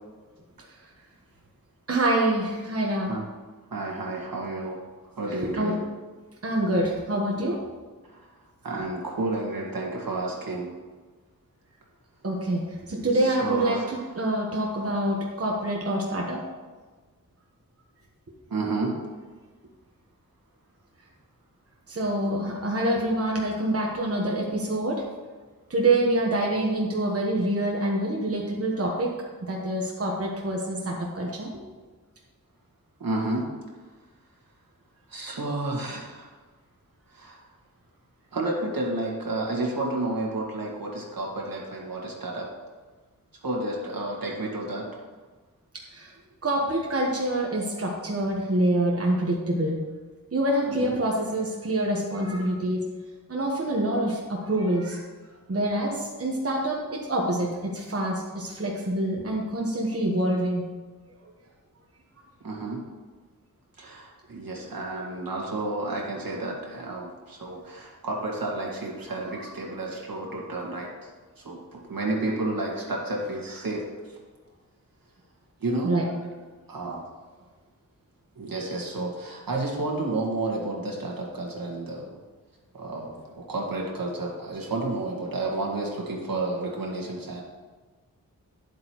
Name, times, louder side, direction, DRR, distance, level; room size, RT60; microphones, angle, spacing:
voice 1, 1.9-3.2 5.4-5.7 6.4-7.6 12.2-16.4 21.9-25.0 25.7-29.1 29.4-31.5 45.9-46.1 46.4-49.8 50.3-52.8 53.3-55.0 55.5-60.7 75.8-76.0, right 1 dB, 40° right, -2 dB, 1.3 m, -26 dB
voice 2, 3.7-4.8 5.2-5.8 8.1-8.3 8.6-10.7 13.1-14.1 18.5-19.0 33.0-33.5 35.1-36.3 37.1-37.4 38.3-42.5 43.4-44.8 50.7-50.9 62.4-62.8 63.8-71.1 71.4-73.9 75.6-76.0 76.7-77.0 78.4-82.2 82.7-87.4, right 2 dB, 75° right, -2 dB, 2.0 m, -31 dB
10.0 x 7.9 x 3.1 m, 1.4 s
wide cardioid pair, 100°, 35 cm